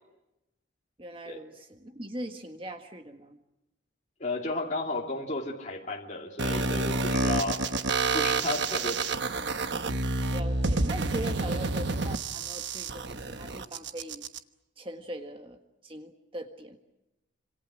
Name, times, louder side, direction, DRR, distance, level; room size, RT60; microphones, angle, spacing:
voice 1, 1.0-3.4 10.3-14.2 14.8-16.8, right 1 dB, 25° right, 5 dB, 1.5 m, -40 dB
voice 2, 4.2-7.6 8.1-9.2 11.5-11.6, left 2 dB, 35° left, -1 dB, 2.7 m, -33 dB
sound 1, 6.4-14.4, right 3 dB, 60° right, 1.2 m, -29 dB
28.5 x 27.0 x 6.3 m, 0.93 s
head